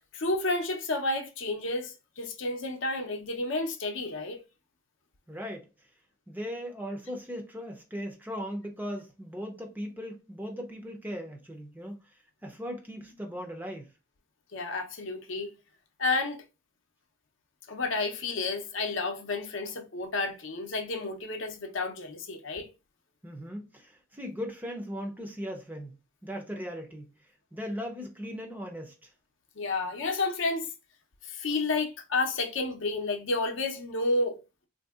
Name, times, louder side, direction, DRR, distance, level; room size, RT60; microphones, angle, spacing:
voice 1, 0.1-4.4 14.5-15.5 16.0-16.4 17.7-22.7 29.6-30.7 31.2-34.4, left 2 dB, 65° left, 0.6 m, -31 dB
voice 2, 5.3-5.7 6.3-13.9 23.2-26.0 26.2-27.1 27.5-29.1, equal, 10° right, 0.5 m, -38 dB
3.5 x 2.6 x 2.3 m
head